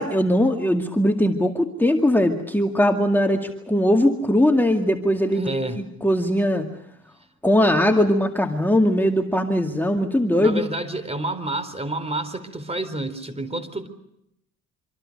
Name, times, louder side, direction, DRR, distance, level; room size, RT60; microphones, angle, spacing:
voice 1, 0.0-5.5 5.8-6.7 7.4-10.6, left 1 dB, 5° left, 2 dB, 2.2 m, -20 dB
voice 2, 5.3-5.8 10.4-13.9, right 2 dB, 20° right, 13 dB, 4.0 m, -29 dB
26.5 x 25.5 x 6.6 m, 0.79 s
cardioid pair, 90°, 30 cm